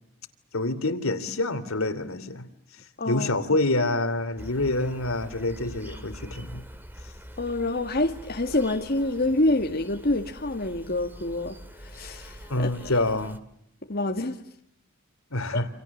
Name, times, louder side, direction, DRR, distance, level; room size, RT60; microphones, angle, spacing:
voice 1, 0.5-2.5 3.0-6.6 12.5-13.4 15.3-15.7, left 2 dB, 75° left, 3.0 m, -27 dB
voice 2, 3.0-3.3 7.4-12.9 13.9-14.4 15.5-15.6, left 2 dB, 45° left, 1.9 m, -27 dB
Insect, 4.4-13.4, equal, 10° right, 2.1 m, -44 dB
29.0 x 28.0 x 7.3 m
head